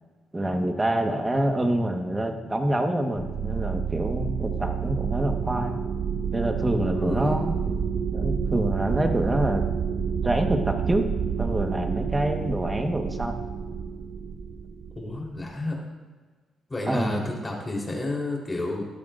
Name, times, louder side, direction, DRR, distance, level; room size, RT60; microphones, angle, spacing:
voice 1, 0.3-5.8 6.3-7.6 8.1-9.6 10.2-11.0 11.4-13.4 16.9-17.2, right 1 dB, 15° right, 4 dB, 1.4 m, -26 dB
sound 1, 3.2-15.4, right 7 dB, 55° right, 0.6 m, -29 dB
voice 2, 6.9-7.4 15.0-15.8 16.7-18.9, left 2 dB, 20° left, -2 dB, 3.8 m, -31 dB
17.0 x 12.0 x 2.6 m, 1.4 s
cardioid pair, 90°, 0 cm